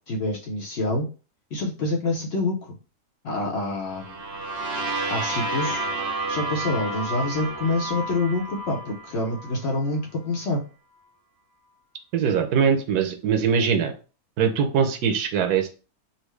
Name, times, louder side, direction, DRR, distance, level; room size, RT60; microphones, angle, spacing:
voice 1, 0.1-1.1 1.5-2.7 3.2-4.2 5.1-5.8 6.3-10.6, left 2 dB, 55° left, 0 dB, 0.8 m, -27 dB
sound 1, 3.9-9.7, right 2 dB, 50° right, 0.5 m, -30 dB
voice 2, 12.1-13.9 14.4-15.7, right 7 dB, 85° right, 7 dB, 1.2 m, -22 dB
4.0 x 2.0 x 3.1 m, 0.34 s
omnidirectional pair, 1.6 m